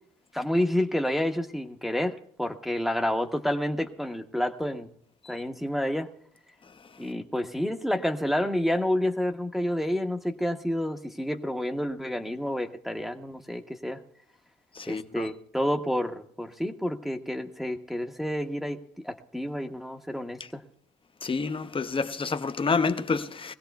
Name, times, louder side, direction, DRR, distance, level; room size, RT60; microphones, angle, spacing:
voice 1, 0.3-4.9 5.3-6.1 7.0-14.0 14.9-18.8 19.0-20.6, left 1 dB, ahead, 0.9 m, -29 dB
voice 2, 14.7-15.3 21.2-23.5, left 4 dB, 25° left, 0.7 m, -28 dB
22.0 x 16.0 x 2.3 m
cardioid pair, 90°, 20 cm